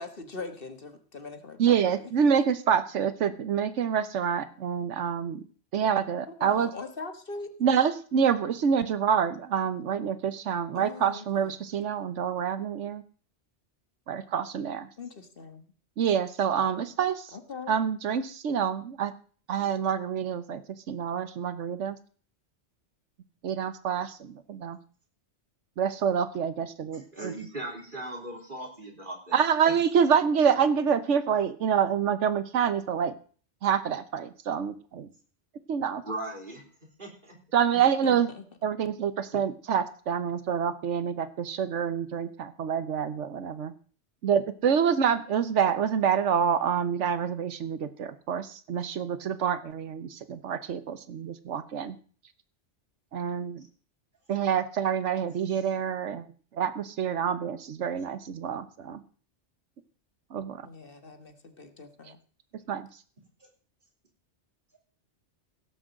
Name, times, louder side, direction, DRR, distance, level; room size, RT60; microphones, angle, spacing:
voice 1, 0.0-1.9 6.3-7.5 10.7-11.5 15.0-15.6 17.3-17.8 38.0-38.4 60.6-62.2, left 4 dB, 50° left, 8 dB, 1.5 m, -41 dB
voice 2, 1.6-5.4 5.7-6.7 7.6-13.0 14.1-14.9 16.0-17.4 17.7-19.1 19.5-20.6 20.9-22.0 23.4-24.8 25.8-27.3 29.3-33.2 33.6-35.1 35.7-36.0 37.5-38.3 38.6-43.7 44.2-52.0 53.1-53.6 54.3-56.3 56.5-59.0 60.3-60.7 62.1-62.2 62.7-62.9, right 7 dB, 90° right, 13 dB, 1.2 m, -27 dB
voice 3, 27.1-29.4 36.0-36.6 37.0-37.4 55.5-55.6 63.4-63.5, right 1 dB, 45° right, 2 dB, 3.5 m, -38 dB
16.5 x 6.3 x 7.4 m, 0.42 s
omnidirectional pair, 1.2 m